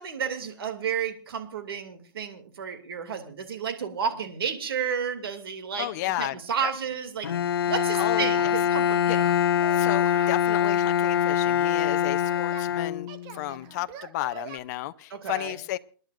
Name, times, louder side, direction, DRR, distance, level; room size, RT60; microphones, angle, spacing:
voice 1, 0.0-5.9 6.2-7.3 7.7-9.3 15.1-15.6, right 7 dB, 80° right, 2.6 m, -31 dB
voice 2, 5.8-6.7 7.9-8.5 9.1-9.2 9.7-15.8, left 15 dB, 45° left, 0.7 m, -33 dB
Bowed string instrument, 7.2-13.4, left 9 dB, 85° left, 0.7 m, -24 dB
Singing, 7.9-8.9 9.2-10.4 11.0-12.7 13.1-14.6, right 10 dB, 35° right, 1.2 m, -44 dB
28.0 x 10.5 x 2.6 m
hypercardioid pair, 135°, 12 cm